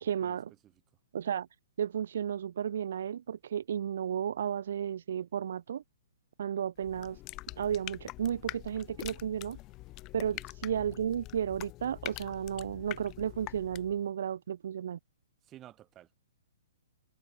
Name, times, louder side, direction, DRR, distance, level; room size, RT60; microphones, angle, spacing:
voice 1, 0.0-0.5 1.1-1.5 1.8-5.8 6.4-7.2 7.6-9.6 10.1-15.0, right 9 dB, 65° right, 0.4 m, -33 dB
sound 1, 6.8-14.0, left 19 dB, 30° left, 1.4 m, -45 dB
voice 2, 15.4-16.2, right 13 dB, 25° right, 6.4 m, -53 dB
hypercardioid pair, 130°, 0 cm